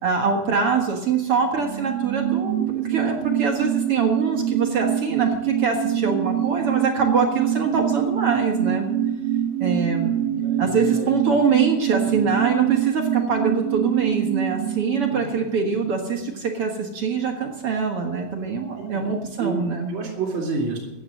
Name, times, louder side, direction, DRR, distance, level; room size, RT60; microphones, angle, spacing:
voice 1, 0.0-8.9 9.6-10.1 10.6-19.9, right 5 dB, 55° right, 2 dB, 1.8 m, -24 dB
sound 1, 1.5-16.6 16.8-16.9, right 11 dB, 75° right, 1.5 m, -25 dB
voice 2, 10.4-11.1 12.1-12.2 15.1-15.2 18.8-19.1 19.4-20.8, right 4 dB, 35° right, -2 dB, 3.0 m, -29 dB
15.0 x 9.7 x 6.4 m, 1.1 s
omnidirectional pair, 4.2 m